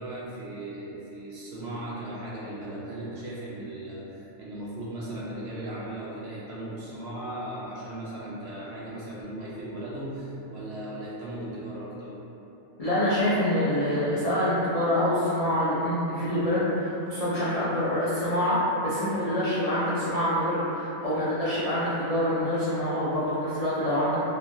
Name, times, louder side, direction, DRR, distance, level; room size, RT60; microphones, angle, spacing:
voice 1, 0.0-12.2, right 1 dB, 65° right, -7 dB, 0.7 m, -37 dB
voice 2, 12.8-24.2, left 1 dB, 80° left, -12 dB, 0.3 m, -26 dB
2.9 x 2.2 x 2.6 m, 3.0 s
omnidirectional pair, 1.4 m